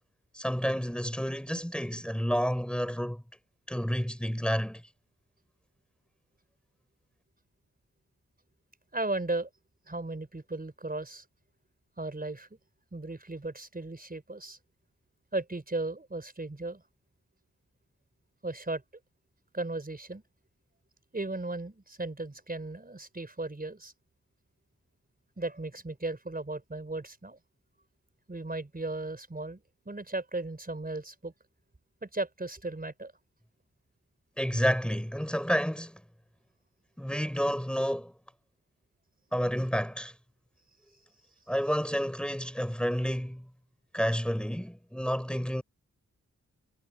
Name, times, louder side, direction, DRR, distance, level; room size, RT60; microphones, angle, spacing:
voice 1, 0.3-3.2 3.7-4.8 34.4-36.0 37.0-38.1 39.3-40.1 41.5-43.5 43.9-45.6, equal, 5° left, 4.4 m, -30 dB
voice 2, 8.9-9.5 9.9-11.3 12.0-12.5 12.9-14.6 15.3-16.8 18.4-18.8 19.5-20.2 21.1-23.9 25.4-27.4 28.3-31.3 32.0-33.1, right 2 dB, 30° right, 5.2 m, -36 dB
cardioid pair, 60°, 30 cm